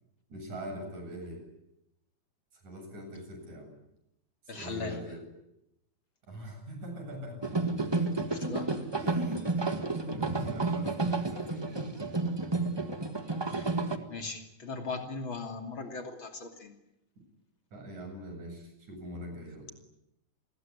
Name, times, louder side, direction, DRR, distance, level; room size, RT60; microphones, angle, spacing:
voice 1, 0.3-1.4 2.5-3.7 4.5-5.2 6.3-7.5 9.0-9.8 10.1-11.7 17.7-19.7, equal, 85° right, 4 dB, 9.5 m, -43 dB
voice 2, 4.5-5.0 8.3-8.7 13.5-13.8 14.1-16.7, left 4 dB, 45° left, 6 dB, 3.3 m, -39 dB
sound 1, 7.4-14.0, right 3 dB, 15° right, 1.1 m, -31 dB
28.5 x 20.5 x 9.9 m, 0.84 s
omnidirectional pair, 3.3 m